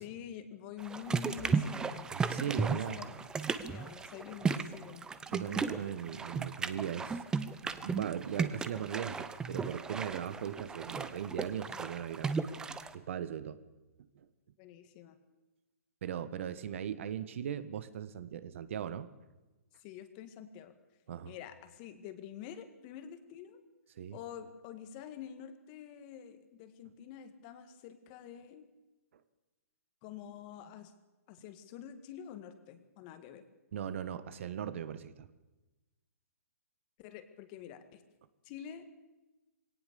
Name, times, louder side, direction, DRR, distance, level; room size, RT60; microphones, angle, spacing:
voice 1, 0.0-2.1 2.5-3.2 3.6-5.1 14.6-15.2 19.8-20.8 21.3-23.6 24.1-28.7 30.0-30.9 31.3-33.4 37.0-38.0 38.4-38.9, left 9 dB, 30° left, 10 dB, 1.9 m, -47 dB
sound 1, 0.8-13.0, right 5 dB, 10° right, 0.7 m, -35 dB
voice 2, 2.1-3.0 5.3-7.2 7.6-12.3 12.9-13.6 16.0-19.1 21.1-21.3 24.0-24.2 33.7-35.3, right 9 dB, 55° right, 14 dB, 1.3 m, -38 dB
21.0 x 18.0 x 6.9 m, 1.1 s
hypercardioid pair, 150°, 8 cm